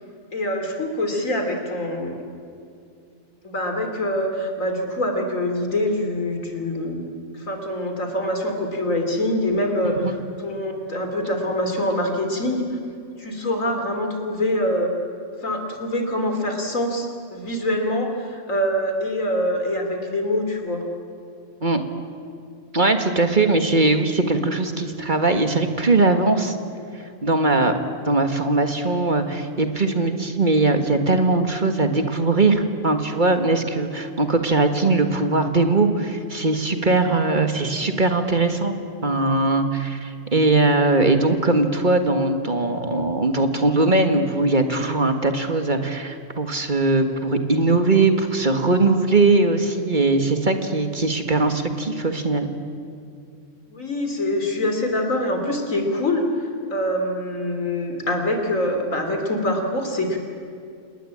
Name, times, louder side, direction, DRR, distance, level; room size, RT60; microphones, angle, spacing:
voice 1, 0.3-2.2 3.4-7.0 7.3-12.7 13.2-14.9 15.4-20.9 53.7-60.2, left 1 dB, 90° left, 4 dB, 3.8 m, -24 dB
voice 2, 22.7-26.6 26.9-27.7 28.1-38.7 39.0-52.5, right 2 dB, 40° right, 6 dB, 1.8 m, -20 dB
28.5 x 19.5 x 8.7 m, 2.4 s
omnidirectional pair, 1.3 m